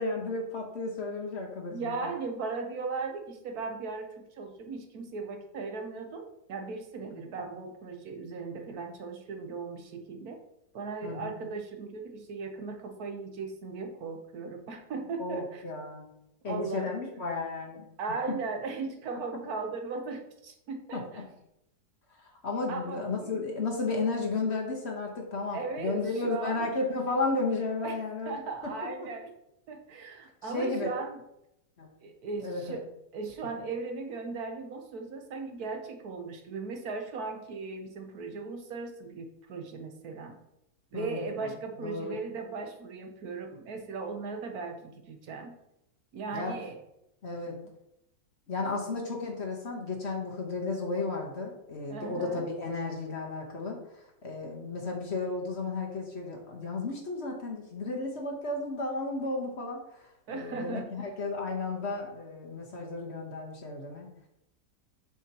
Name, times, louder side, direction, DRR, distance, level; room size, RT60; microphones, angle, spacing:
voice 1, 0.0-2.0 7.2-7.3 11.0-11.3 15.2-16.1 16.4-17.9 18.3-18.4 20.9-21.2 22.4-28.4 30.4-30.9 31.8-31.9 32.4-32.8 40.9-41.3 41.8-42.2 46.3-46.5 47.2-47.5 48.5-64.1, left 3 dB, 45° left, 0 dB, 1.2 m, -33 dB
voice 2, 1.7-10.4 10.7-15.6 16.5-17.2 18.0-21.2 22.7-23.5 25.5-26.7 27.8-28.0 28.3-29.3 29.7-31.2 32.0-40.4 40.9-45.6 46.1-46.8 51.9-52.4 60.3-61.1, right 4 dB, 70° right, 4 dB, 1.3 m, -37 dB
7.0 x 6.3 x 2.9 m, 0.84 s
omnidirectional pair, 1.8 m